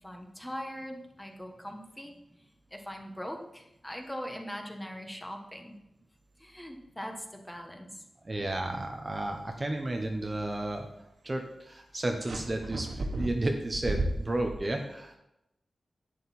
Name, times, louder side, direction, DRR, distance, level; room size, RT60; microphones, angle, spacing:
voice 1, 0.0-2.1 2.7-5.8 6.4-8.0, equal, 5° left, 3 dB, 1.2 m, -41 dB
voice 2, 8.2-10.9 11.2-15.2, right 1 dB, 25° right, 3 dB, 1.0 m, -32 dB
sound 1, 12.2-14.6, right 2 dB, 90° right, 2.5 m, -34 dB
11.0 x 9.0 x 4.3 m, 0.85 s
wide cardioid pair, 155°, 0 cm